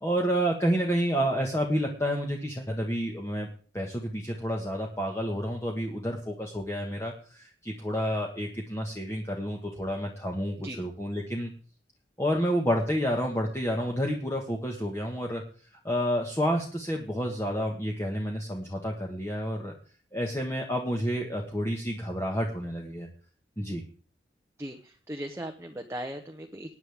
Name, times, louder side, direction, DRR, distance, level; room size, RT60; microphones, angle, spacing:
voice 1, 0.0-3.5 3.7-11.5 12.2-15.4 15.8-19.7 20.1-23.1 23.6-23.8, equal, 15° left, 0 dB, 1.5 m, -29 dB
voice 2, 24.6-26.8, right 1 dB, 15° right, 5 dB, 0.9 m, -38 dB
20.0 x 9.7 x 3.6 m, 0.41 s
head